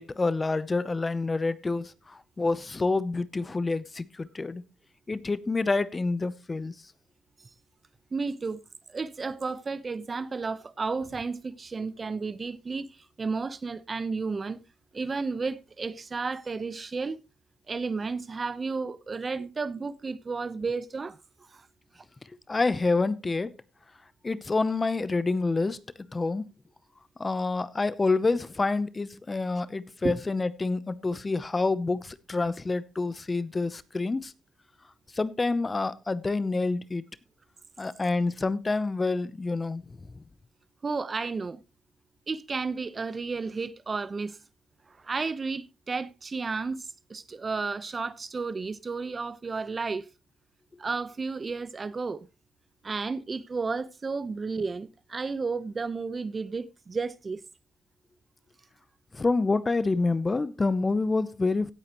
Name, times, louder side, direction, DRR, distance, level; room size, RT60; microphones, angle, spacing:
voice 1, 0.0-4.6 5.1-6.7 22.5-23.5 24.2-25.8 26.1-26.5 27.2-34.3 35.1-37.0 37.8-39.8 40.1-40.2 59.1-61.7, left 3 dB, 25° left, 0.7 m, -27 dB
voice 2, 8.1-8.6 8.9-14.6 14.9-17.2 17.7-21.7 21.9-22.0 30.0-30.1 40.8-41.6 42.3-44.4 44.9-50.1 50.8-52.3 52.8-57.4, right 4 dB, 30° right, 0.9 m, -32 dB
17.0 x 8.5 x 3.0 m
cardioid pair, 90°, 0 cm